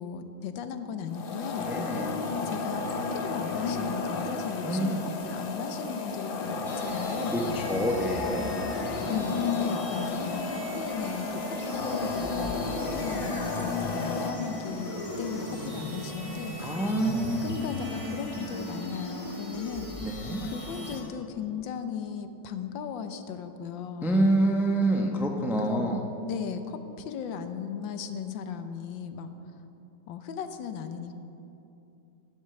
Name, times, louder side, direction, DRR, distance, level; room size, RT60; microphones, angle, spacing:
voice 1, 0.0-1.7 2.4-5.0 5.2-7.3 9.1-16.5 17.4-20.0 20.4-24.2 25.6-25.9 26.3-29.3 30.1-31.2, left 7 dB, 80° left, 9 dB, 1.5 m, -36 dB
sound 1, 1.1-14.3, left 4 dB, 50° left, 0.6 m, -32 dB
voice 2, 1.6-2.3 4.6-5.0 7.2-8.5 14.2-14.4 16.6-17.5 20.0-20.4 24.0-26.0, right 1 dB, 5° right, 2 dB, 0.4 m, -27 dB
sound 2, 6.6-21.0, left 1 dB, 20° left, 1.1 m, -38 dB
11.5 x 8.0 x 6.9 m, 2.8 s
omnidirectional pair, 2.0 m